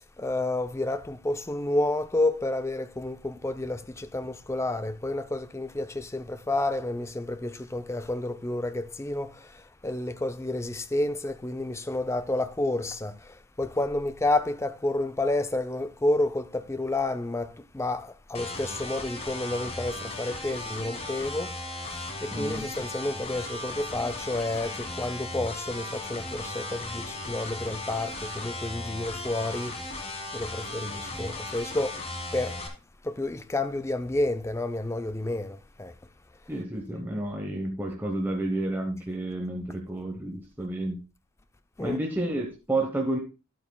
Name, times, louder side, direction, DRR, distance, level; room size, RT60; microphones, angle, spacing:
voice 1, 0.0-30.1 30.3-32.0 32.3-32.6 33.0-35.9 41.8-42.0, left 2 dB, 15° left, 0.4 m, -30 dB
sound 1, 18.3-32.7, left 2 dB, 30° left, 1.5 m, -36 dB
voice 2, 22.3-22.7 36.5-41.0 41.8-43.2, right 1 dB, 10° right, 0.9 m, -30 dB
12.0 x 8.4 x 2.2 m
head